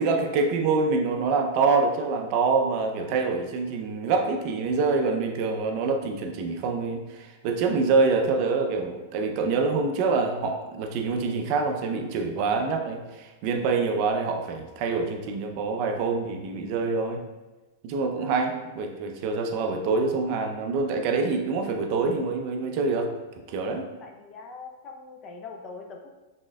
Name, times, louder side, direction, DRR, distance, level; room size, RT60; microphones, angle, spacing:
voice 1, 0.0-17.2 17.8-23.1 23.5-23.9, right 4 dB, 40° right, 4 dB, 0.4 m, -26 dB
voice 2, 24.0-26.1, left 4 dB, 25° left, 3 dB, 0.4 m, -42 dB
4.2 x 3.5 x 2.2 m, 1.1 s
supercardioid pair, 155°, 0 cm